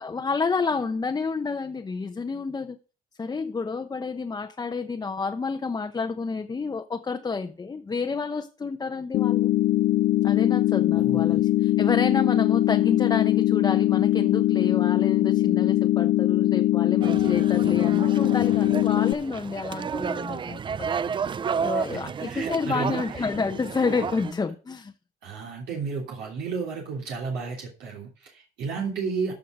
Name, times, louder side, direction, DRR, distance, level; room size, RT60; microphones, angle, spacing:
voice 1, 0.0-2.8 3.2-9.5 10.2-20.6 21.6-24.9, left 4 dB, 20° left, 0.9 m, -29 dB
sound 1, 9.1-19.1, left 16 dB, 65° left, 0.4 m, -21 dB
voice 2, 10.9-11.4 21.7-23.3 25.2-29.3, right 5 dB, 80° right, 3.1 m, -33 dB
sound 2, 17.0-24.3, right 6 dB, 30° right, 0.5 m, -32 dB
14.0 x 5.8 x 5.0 m
cardioid pair, 110°, 17 cm